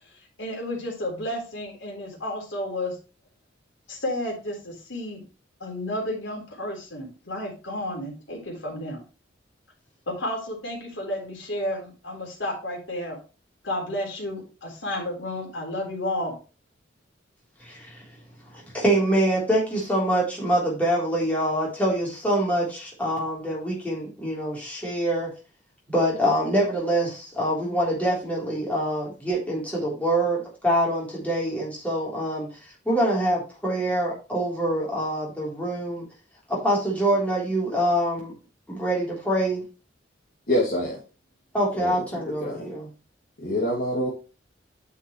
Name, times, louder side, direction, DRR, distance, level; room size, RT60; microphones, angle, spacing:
voice 1, 0.4-3.0 3.9-5.2 5.6-9.0 10.1-13.2 13.6-16.3, left 1 dB, 80° left, 0 dB, 3.5 m, -32 dB
voice 2, 17.6-18.0 18.5-25.3 25.9-32.5 32.8-36.0 36.5-38.3 38.7-39.6 41.5-42.9, right 1 dB, 10° left, -5 dB, 3.5 m, -25 dB
voice 3, 40.5-41.0 41.8-42.7 43.4-44.1, left 1 dB, 50° left, -5 dB, 2.3 m, -26 dB
9.4 x 5.9 x 3.1 m, 0.33 s
head